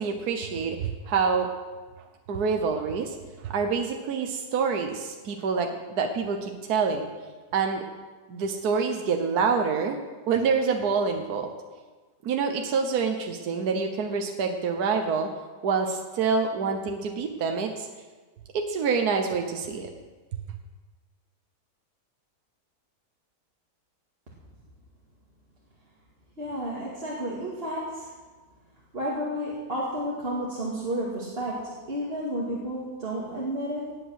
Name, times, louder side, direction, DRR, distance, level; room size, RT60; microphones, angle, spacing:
voice 1, 0.0-1.5 2.3-3.1 3.4-7.1 7.5-7.8 8.3-10.0 10.3-11.5 12.2-15.3 15.6-17.9 18.5-19.9, right 5 dB, 65° right, 4 dB, 1.5 m, -26 dB
voice 2, 26.4-28.1 28.9-34.0, equal, 35° right, -6 dB, 2.4 m, -31 dB
18.0 x 8.4 x 6.3 m, 1.4 s
omnidirectional pair, 1.8 m